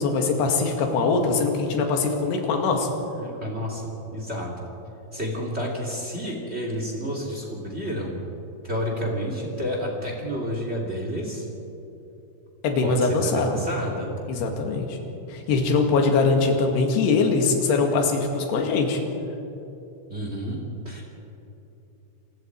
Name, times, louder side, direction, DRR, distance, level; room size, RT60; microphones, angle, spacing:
voice 1, 0.0-2.9 12.6-13.6 14.3-15.0 15.3-19.0, left 4 dB, 65° left, 3 dB, 3.8 m, -22 dB
voice 2, 3.2-4.5 5.1-8.1 8.6-11.4 12.8-14.1 14.4-14.5 20.1-20.6 20.8-21.0, equal, 20° right, 0 dB, 1.7 m, -30 dB
28.5 x 20.0 x 4.7 m, 2.9 s
omnidirectional pair, 5.5 m